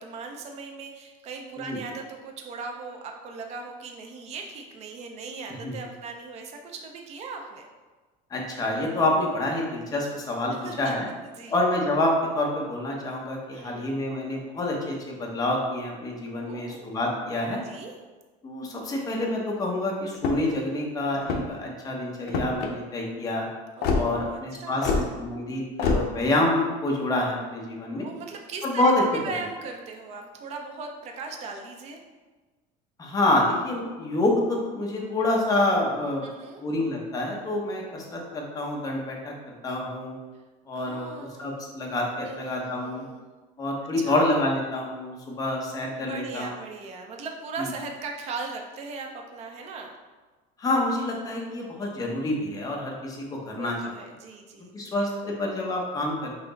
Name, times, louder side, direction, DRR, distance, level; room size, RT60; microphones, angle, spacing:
voice 1, 0.0-7.7 10.6-10.9 11.4-11.5 13.5-14.0 16.5-17.0 17.7-17.9 23.8-25.0 28.0-32.0 36.2-36.6 40.7-41.6 42.2-43.2 44.0-44.2 46.0-49.9 53.5-54.7 55.0-55.3, right 4 dB, 40° right, 3 dB, 0.5 m, -39 dB
voice 2, 8.3-11.1 11.5-17.6 18.4-23.5 23.9-28.1 28.6-29.0 33.0-36.3 36.6-40.1 40.7-41.1 41.4-43.0 43.6-46.5 47.6-47.7 50.6-53.8 54.7-56.3, left 1 dB, 20° left, -1 dB, 0.7 m, -27 dB
sound 1, 20.1-20.6 21.2-21.7 22.3-22.7 23.8-24.0 24.8-25.1 25.8-26.0, left 4 dB, 60° left, 0.6 m, -25 dB
5.6 x 2.0 x 3.9 m, 1.3 s
cardioid pair, 155°, 18 cm